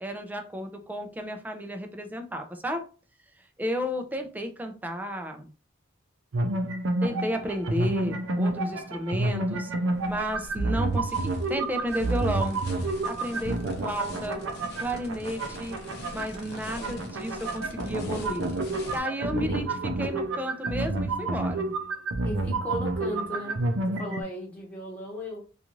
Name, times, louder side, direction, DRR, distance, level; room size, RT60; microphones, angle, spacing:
voice 1, 0.0-2.9 3.6-5.5 7.0-9.7 10.1-12.6 13.0-14.4 14.8-15.8 16.1-18.5 18.9-21.7, equal, 10° right, 4 dB, 0.4 m, -32 dB
sound 1, 6.3-24.2, right 2 dB, 70° right, 0.5 m, -29 dB
sound 2, 9.9-19.0, left 1 dB, 55° left, 0.7 m, -43 dB
voice 2, 22.2-23.6 23.8-25.4, left 1 dB, 5° left, -3 dB, 1.0 m, -36 dB
2.5 x 2.4 x 3.0 m, 0.35 s
head